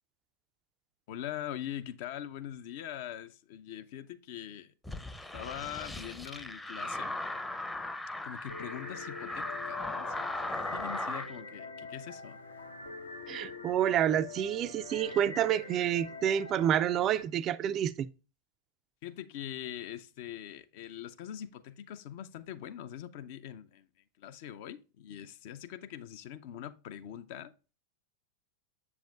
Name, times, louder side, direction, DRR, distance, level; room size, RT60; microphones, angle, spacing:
voice 1, 1.1-4.7 5.3-7.1 8.2-10.4 10.7-12.4 19.0-23.9 24.2-27.5, left 11 dB, 50° left, 0.5 m, -42 dB
sound 1, 4.8-11.3, left 2 dB, 5° left, 0.6 m, -38 dB
sound 2, 8.5-17.2, left 4 dB, 75° left, 0.9 m, -45 dB
voice 2, 13.3-18.1, right 10 dB, 30° right, 0.3 m, -28 dB
7.4 x 7.0 x 2.3 m
figure-of-eight pair, 90°, 0 cm